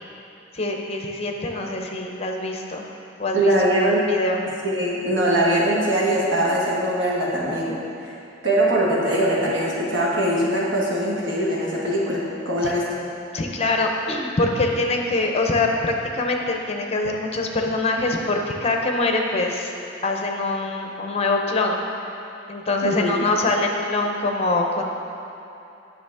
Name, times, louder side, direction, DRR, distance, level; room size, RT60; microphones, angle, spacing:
voice 1, 0.5-2.9 3.2-4.4 12.6-12.7 13.3-19.7 20.0-21.8 22.5-24.8, left 2 dB, 35° left, 2 dB, 0.6 m, -24 dB
voice 2, 3.3-4.1 4.6-7.8 8.4-12.8 22.8-23.1, right 1 dB, 80° right, -5 dB, 1.5 m, -21 dB
8.0 x 6.1 x 3.5 m, 2.8 s
head